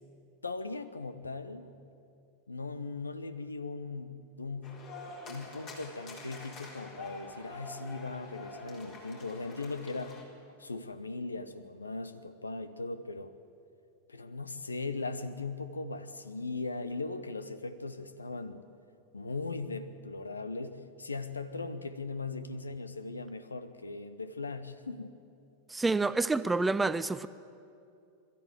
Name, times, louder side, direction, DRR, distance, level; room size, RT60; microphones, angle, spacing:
voice 1, 0.4-1.6 2.5-4.8 5.3-10.2 10.6-13.3 14.1-18.6 19.1-25.2, left 3 dB, 80° left, 1.0 m, -39 dB
sound 1, 4.6-10.2, left 3 dB, 35° left, 4.0 m, -47 dB
voice 2, 25.7-27.3, right 3 dB, 10° right, 0.5 m, -28 dB
22.0 x 13.5 x 9.1 m
figure-of-eight pair, 90°, 0 cm